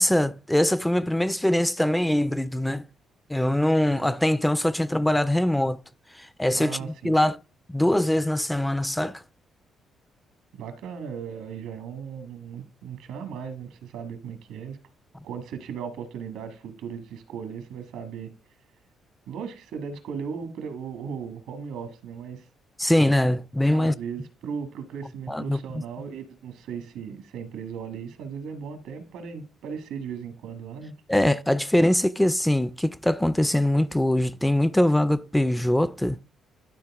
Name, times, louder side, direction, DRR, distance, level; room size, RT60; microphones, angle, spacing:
voice 1, 0.0-2.9 3.3-5.8 6.1-7.4 7.7-9.2 22.8-23.9 25.3-25.8 31.1-36.2, left 1 dB, 5° left, 0.3 m, -23 dB
voice 2, 6.5-7.2 10.6-14.8 15.2-18.3 19.3-22.5 23.7-30.9, right 7 dB, 90° right, 1.5 m, -37 dB
11.5 x 4.0 x 3.6 m
cardioid pair, 90°, 0 cm